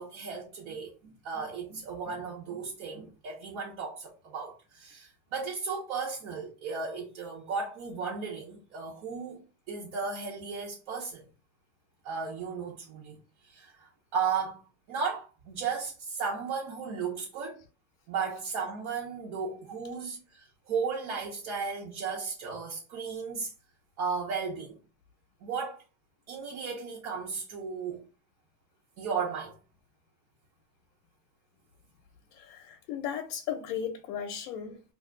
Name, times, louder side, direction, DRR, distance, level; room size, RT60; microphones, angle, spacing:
voice 1, 0.0-11.3 12.0-13.2 13.5-14.6 14.9-17.6 18.1-23.5 24.0-24.8 25.4-25.8 26.3-28.0 29.0-29.5, right 5 dB, 70° right, 1.1 m, -35 dB
voice 2, 32.3-34.8, left 8 dB, 75° left, 0.6 m, -36 dB
2.4 x 2.3 x 3.7 m
supercardioid pair, 120°, 46 cm